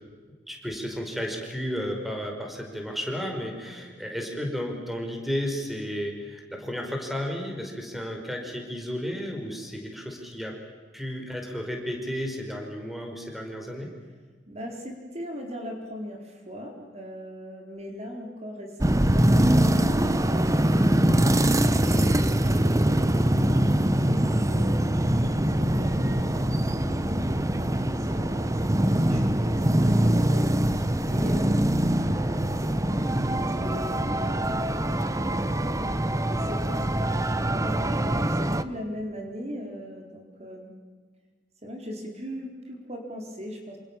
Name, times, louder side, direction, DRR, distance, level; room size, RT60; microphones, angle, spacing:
voice 1, 0.5-10.5 10.9-13.9, equal, ahead, 2 dB, 5.2 m, -33 dB
voice 2, 14.5-20.5 21.1-31.5 32.1-35.7 36.2-40.7 41.6-43.8, equal, 35° right, 2 dB, 4.3 m, -40 dB
sound 1, 18.8-38.6, right 1 dB, 20° right, 1.1 m, -23 dB
28.0 x 27.5 x 7.3 m, 1.4 s
head